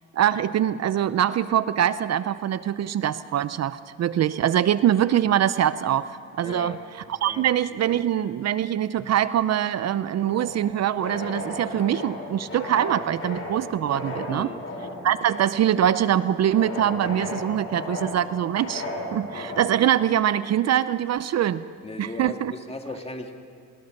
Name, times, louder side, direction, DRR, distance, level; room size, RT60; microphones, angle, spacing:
voice 1, 0.1-6.7 7.1-14.5 15.0-18.8 19.1-21.6 22.0-22.5, right 10 dB, 60° right, 15 dB, 0.6 m, -23 dB
voice 2, 6.4-6.8 7.2-7.5 14.3-14.6 21.8-23.3, left 2 dB, 20° left, 3 dB, 2.6 m, -37 dB
sound 1, 10.3-19.9, left 2 dB, 45° left, 7.6 m, -35 dB
25.0 x 21.0 x 6.6 m, 2.4 s
cardioid pair, 90°, 30 cm